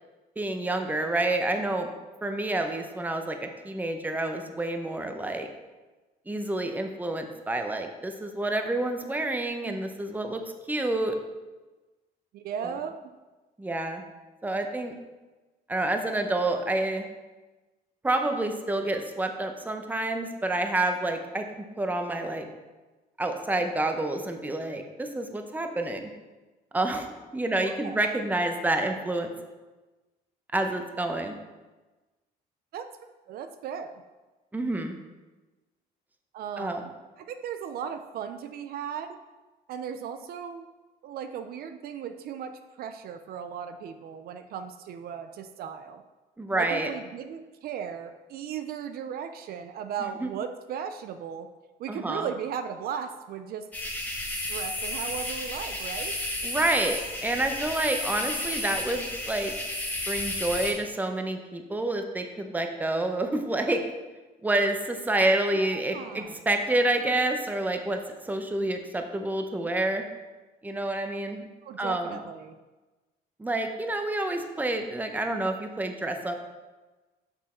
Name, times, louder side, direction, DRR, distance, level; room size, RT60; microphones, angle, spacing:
voice 1, 0.4-1.9 2.2-5.5 6.3-10.4 10.7-11.2 13.6-14.0 14.4-14.9 15.7-17.0 18.0-22.5 23.2-26.1 26.7-27.1 27.3-29.3 30.5-31.4 34.5-35.0 36.6-36.8 46.4-46.9 50.2-50.3 51.9-52.3 56.4-59.5 60.1-63.8 64.4-70.0 70.6-71.4 71.8-72.2 73.4-76.3, right 2 dB, 10° right, 5 dB, 0.8 m, -28 dB
voice 2, 12.3-13.1 27.6-28.0 32.7-32.9 33.3-34.0 36.3-36.9 37.2-39.2 39.7-40.7 41.0-46.0 46.5-51.5 51.8-53.7 54.5-56.2 65.5-66.4 71.6-72.6, right 8 dB, 65° right, 9 dB, 0.5 m, -36 dB
sound 1, 53.7-60.7, left 1 dB, 10° left, 1.6 m, -32 dB
6.3 x 6.1 x 4.3 m, 1.2 s
cardioid pair, 110°, 17 cm